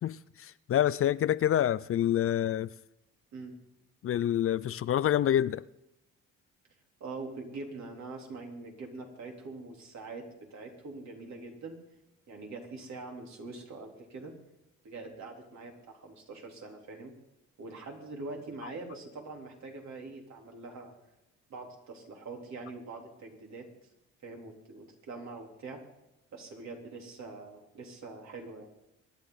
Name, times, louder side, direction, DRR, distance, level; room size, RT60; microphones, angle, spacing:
voice 1, 0.0-2.7 4.0-5.6, left 11 dB, 45° left, 0.4 m, -27 dB
voice 2, 7.0-11.8 12.3-14.3 14.8-17.1 17.6-20.9 21.5-23.7 24.2-25.8 26.3-28.7, right 3 dB, 65° right, 3.9 m, -44 dB
25.0 x 10.5 x 4.1 m
cardioid pair, 90°, 30 cm